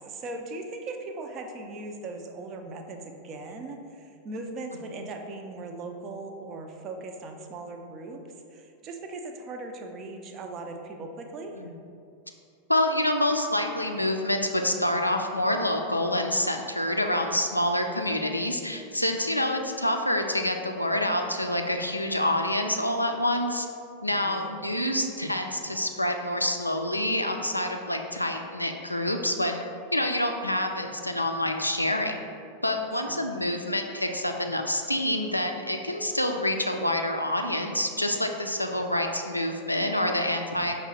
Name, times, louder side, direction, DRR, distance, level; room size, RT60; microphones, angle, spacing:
voice 1, 0.0-11.6 24.1-24.5 32.9-33.4, right 2 dB, 30° right, 4 dB, 0.4 m, -39 dB
voice 2, 12.7-23.7 24.0-29.6 29.9-32.2 32.6-40.8, left 1 dB, 85° left, 4 dB, 0.3 m, -27 dB
5.2 x 2.1 x 4.2 m, 2.4 s
figure-of-eight pair, 90°, 0 cm